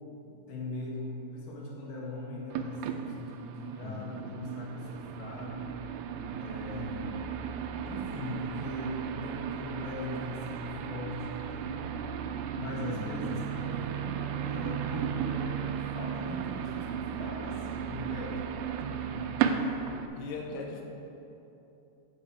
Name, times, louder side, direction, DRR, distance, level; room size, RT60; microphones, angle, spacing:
voice 1, 0.3-5.8 6.4-7.1 7.8-11.8 12.5-18.5 18.9-19.3 20.5-20.6, left 1 dB, 65° left, -3 dB, 2.9 m, -40 dB
sound 1, 2.5-20.1, right 8 dB, 85° right, 2.2 m, -35 dB
voice 2, 3.8-4.2 6.7-7.2 12.8-13.6 20.2-20.8, left 4 dB, 90° left, 1 dB, 2.9 m, -39 dB
9.9 x 6.6 x 4.7 m, 2.9 s
omnidirectional pair, 4.7 m